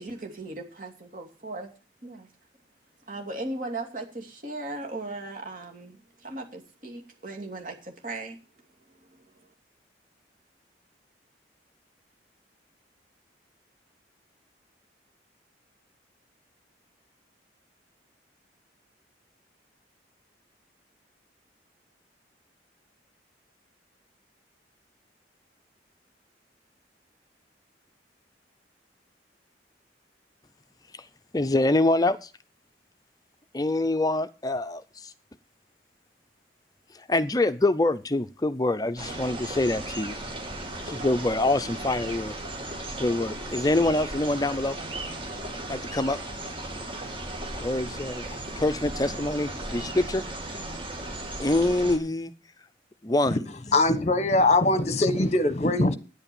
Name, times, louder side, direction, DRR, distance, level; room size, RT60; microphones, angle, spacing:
voice 1, 0.0-1.7 2.0-2.3 3.1-8.4 9.1-9.2, right 2 dB, 45° right, 2.8 m, -37 dB
voice 2, 31.3-32.3 33.5-35.1 36.9-40.1 40.8-42.4 43.0-44.8 45.7-46.2 47.6-48.3 48.6-50.2 51.4-52.3 53.0-53.5, left 2 dB, 20° left, 0.5 m, -25 dB
sound 1, 39.0-52.0, right 1 dB, 30° right, 2.6 m, -36 dB
voice 3, 53.7-55.9, left 2 dB, 35° left, 1.1 m, -22 dB
9.8 x 8.5 x 7.1 m
head